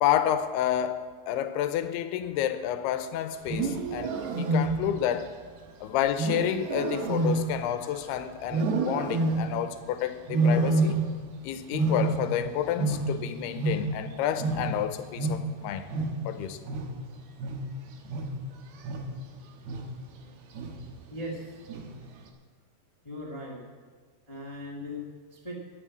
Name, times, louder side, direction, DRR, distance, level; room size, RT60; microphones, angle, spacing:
voice 1, 0.0-5.3 5.8-11.0 11.4-15.9 16.3-16.6, left 10 dB, 85° left, 9 dB, 2.8 m, -30 dB
Wild animals, 3.4-5.1 6.2-8.0 8.5-9.7 10.3-11.3 11.6-14.1 14.4-19.3 19.7-20.1 20.5-21.0 21.7-22.1, right 2 dB, 85° right, 3.3 m, -28 dB
voice 2, 21.1-21.4 23.0-23.6 24.3-25.5, left 1 dB, 30° left, -3 dB, 0.5 m, -38 dB
11.0 x 9.6 x 8.4 m, 1.5 s
omnidirectional pair, 4.5 m